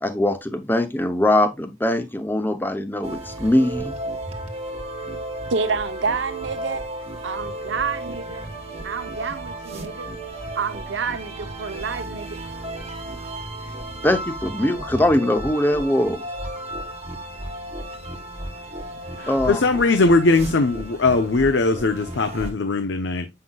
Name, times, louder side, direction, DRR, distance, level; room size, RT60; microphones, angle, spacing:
voice 1, 0.0-3.9 14.0-16.2 19.3-19.6, left 1 dB, 10° left, 0.7 m, -21 dB
sound 1, 3.0-22.5, right 1 dB, 35° right, 1.1 m, -34 dB
voice 2, 5.5-6.8 7.2-8.5 8.8-10.1 10.6-12.4, right 5 dB, 85° right, 0.8 m, -28 dB
voice 3, 19.2-23.3, left 3 dB, 80° left, 0.7 m, -20 dB
7.7 x 5.7 x 2.3 m
head